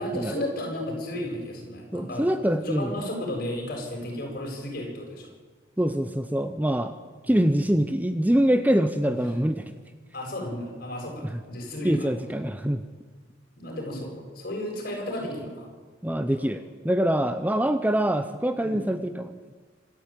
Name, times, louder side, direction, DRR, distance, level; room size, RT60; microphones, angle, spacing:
voice 1, 0.0-5.3 7.2-7.6 9.0-9.4 10.1-12.1 13.6-15.7 16.1-16.4 18.6-18.8, left 1 dB, 50° left, 1 dB, 7.7 m, -34 dB
voice 2, 1.9-2.9 5.8-6.9 7.3-9.7 11.2-11.4 11.8-12.8 16.0-19.3, right 1 dB, 10° right, 10 dB, 0.7 m, -24 dB
26.5 x 13.0 x 9.1 m, 1.4 s
head